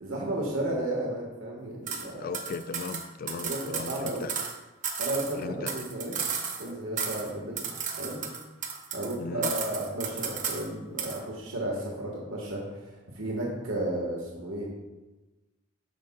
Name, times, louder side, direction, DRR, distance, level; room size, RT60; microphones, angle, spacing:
voice 1, 0.0-2.3 3.3-4.3 5.0-6.1 6.6-7.7 8.0-8.2 8.9-14.7, right 1 dB, 75° right, -2 dB, 1.3 m, -33 dB
sound 1, 1.9-2.1 2.3-4.6 4.8-6.7 7.0-7.3 7.6-9.1 9.4-10.7 11.0-11.2, right 6 dB, 40° right, 0.8 m, -34 dB
voice 2, 2.1-4.4 5.4-5.8 9.2-9.5, left 4 dB, 45° left, 12 dB, 0.3 m, -37 dB
12.5 x 5.2 x 2.2 m, 1.1 s
head